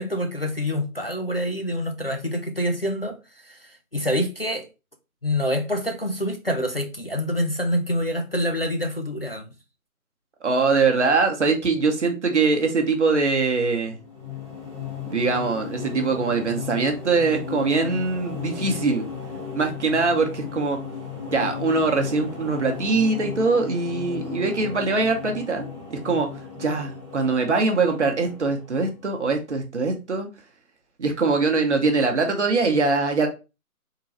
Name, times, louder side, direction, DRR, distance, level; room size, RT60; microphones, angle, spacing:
voice 1, 0.0-3.2 3.4-4.7 5.2-9.5, equal, 45° left, 0.4 m, -26 dB
voice 2, 10.4-14.0 15.1-19.0 19.5-20.8 21.3-26.3 26.5-30.3 31.0-33.3, right 4 dB, 50° right, 0.9 m, -22 dB
sound 1, 13.8-29.2, left 6 dB, 20° right, 0.7 m, -36 dB
3.8 x 2.2 x 4.1 m
figure-of-eight pair, 165°, 44 cm